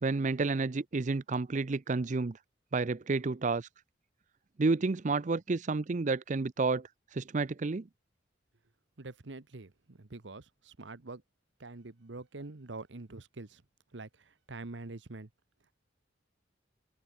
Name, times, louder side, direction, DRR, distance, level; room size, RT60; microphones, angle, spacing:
voice 1, 0.0-2.4 2.7-3.7 4.6-7.8, right 3 dB, 40° right, 0.5 m, -30 dB
voice 2, 9.0-11.2 11.6-13.6 13.9-15.3, right 3 dB, 75° right, 1.1 m, -45 dB
open air
head